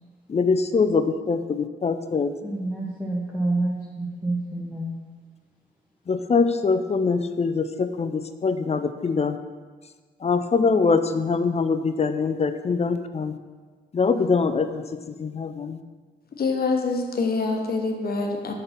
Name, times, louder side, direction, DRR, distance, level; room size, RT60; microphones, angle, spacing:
voice 1, 0.3-2.3 6.1-9.4 10.2-13.3 13.9-14.7 15.2-15.8, left 4 dB, 30° left, 10 dB, 0.5 m, -23 dB
voice 2, 2.4-4.9, right 2 dB, 5° right, -4 dB, 1.0 m, -28 dB
voice 3, 16.4-18.5, left 3 dB, 50° left, 2 dB, 1.0 m, -25 dB
5.3 x 4.0 x 5.8 m, 1.4 s
supercardioid pair, 50°, 20 cm